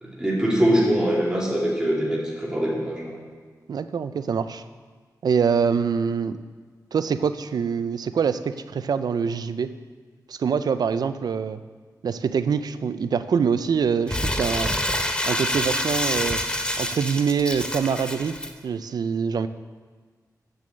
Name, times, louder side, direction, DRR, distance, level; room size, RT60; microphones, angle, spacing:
voice 1, 0.0-3.2, equal, 10° right, -4 dB, 2.4 m, -23 dB
voice 2, 3.7-4.6 5.2-6.4 6.9-9.7 10.3-11.6 12.0-14.7 15.2-16.4 16.8-19.5, right 6 dB, 75° right, 12 dB, 0.4 m, -24 dB
Crumpling crinkling, 14.1-18.5, left 1 dB, 15° left, 0.7 m, -27 dB
6.9 x 6.8 x 7.7 m, 1.5 s
wide cardioid pair, 100°, 7 cm